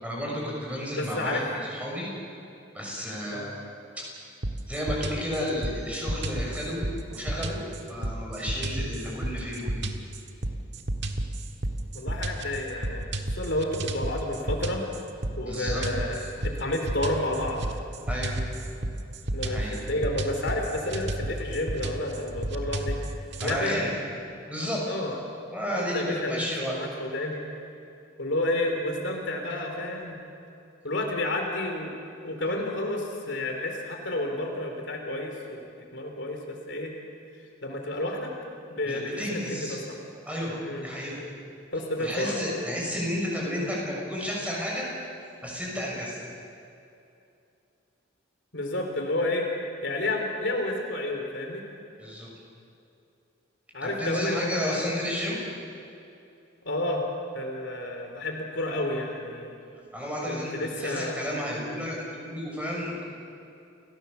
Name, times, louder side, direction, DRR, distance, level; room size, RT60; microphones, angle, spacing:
voice 1, 0.0-1.4 1.7-2.1 2.7-3.5 4.0-4.1 4.7-7.6 7.9-9.9 15.4-15.8 18.1-18.3 19.4-19.7 23.4-23.9 24.5-24.8 25.5-26.7 38.9-39.8 40.2-40.5 40.8-41.2 42.0-44.9 45.4-46.2 52.0-52.3 53.8-55.4 59.9-60.5 60.8-63.0, equal, 5° right, -3 dB, 6.5 m, -32 dB
voice 2, 0.9-1.4 3.3-3.5 11.9-14.8 15.4-17.6 19.3-19.6 19.9-23.0 23.4-23.9 24.9-25.2 25.7-27.4 28.2-30.2 30.8-31.9 32.2-36.9 37.6-38.3 38.7-40.0 40.6-40.8 41.7-42.3 48.5-49.5 49.8-51.6 53.7-54.9 56.7-57.0 57.3-59.6 60.3-61.2, left 1 dB, 65° left, 2 dB, 3.5 m, -30 dB
sound 1, 4.4-23.6, right 1 dB, 60° right, 1.6 m, -32 dB
29.5 x 17.5 x 7.1 m, 2.6 s
head